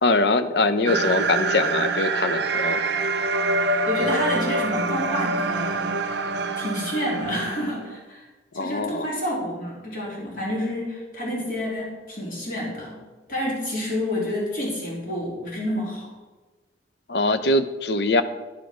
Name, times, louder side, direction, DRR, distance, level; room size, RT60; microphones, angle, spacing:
voice 1, 0.0-2.8 8.5-9.1 17.1-18.2, left 2 dB, 70° left, 11 dB, 0.6 m, -22 dB
sound 1, 0.9-8.0, right 3 dB, 75° right, 0.6 m, -25 dB
voice 2, 3.8-5.9 6.6-8.2 8.5-13.0 13.3-16.1, left 1 dB, 50° left, -4 dB, 3.3 m, -29 dB
10.5 x 5.1 x 6.1 m, 1.2 s
head